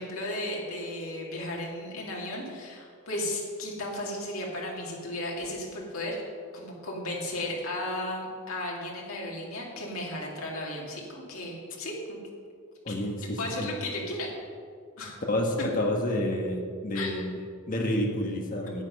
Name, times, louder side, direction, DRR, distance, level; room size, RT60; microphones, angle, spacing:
voice 1, 0.0-6.2 6.5-12.2 12.9-14.3 15.0-15.2 16.9-17.2, left 1 dB, 75° left, -2 dB, 2.6 m, -35 dB
voice 2, 12.8-13.7 15.3-18.8, left 1 dB, 40° left, 2 dB, 1.5 m, -29 dB
10.5 x 9.0 x 5.4 m, 2.2 s
head